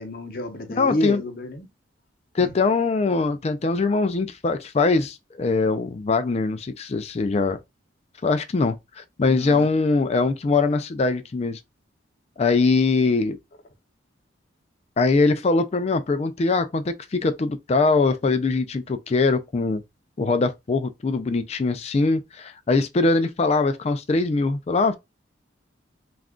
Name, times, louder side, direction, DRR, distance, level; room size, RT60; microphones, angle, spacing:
voice 1, 0.0-1.7 2.4-2.5 9.2-9.7, left 1 dB, 50° left, 0.8 m, -29 dB
voice 2, 0.8-1.2 2.3-7.6 8.2-8.8 9.2-11.6 12.4-13.4 15.0-19.8 20.2-25.0, left 3 dB, 35° left, 0.3 m, -22 dB
2.4 x 2.2 x 3.5 m
head